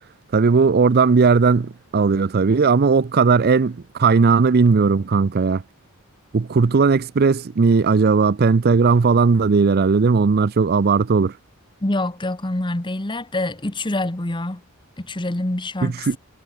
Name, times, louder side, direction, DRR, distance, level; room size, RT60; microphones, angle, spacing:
voice 1, 0.3-5.6 6.3-11.4 15.8-16.2, right 4 dB, 45° right, 0.5 m, -17 dB
voice 2, 11.8-14.6 15.0-16.2, left 1 dB, 20° left, 1.2 m, -26 dB
head